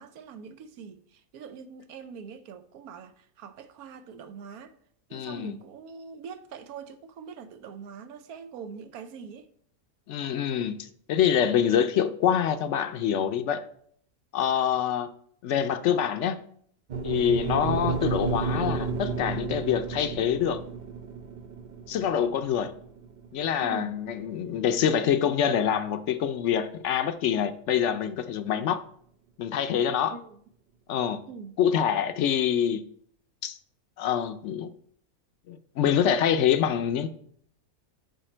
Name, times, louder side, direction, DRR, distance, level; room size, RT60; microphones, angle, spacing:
voice 1, 0.0-4.7 5.1-9.5 17.4-17.7 23.6-24.0 30.1-30.4 31.3-31.6, right 6 dB, 85° right, 1.2 m, -43 dB
voice 2, 5.1-5.5 10.1-13.6 14.3-15.1 15.4-16.4 17.0-20.6 21.9-22.7 23.3-28.8 29.4-30.2 30.9-31.2 31.6-32.8 33.4-33.6 34.0-34.7 35.5-37.1, left 9 dB, 65° left, 0.8 m, -25 dB
sound 1, 16.9-25.1, right 4 dB, 65° right, 0.4 m, -32 dB
9.1 x 5.4 x 4.4 m
omnidirectional pair, 1.5 m